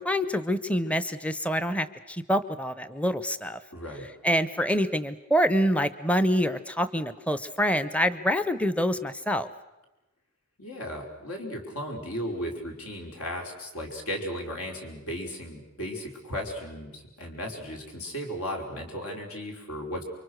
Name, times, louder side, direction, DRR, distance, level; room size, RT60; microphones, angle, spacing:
voice 1, 0.0-3.6 4.2-9.5, equal, 5° left, 13 dB, 0.8 m, -26 dB
voice 2, 3.7-4.1 10.6-20.0, equal, 75° left, 1 dB, 5.1 m, -35 dB
28.5 x 24.0 x 6.5 m, 1.0 s
head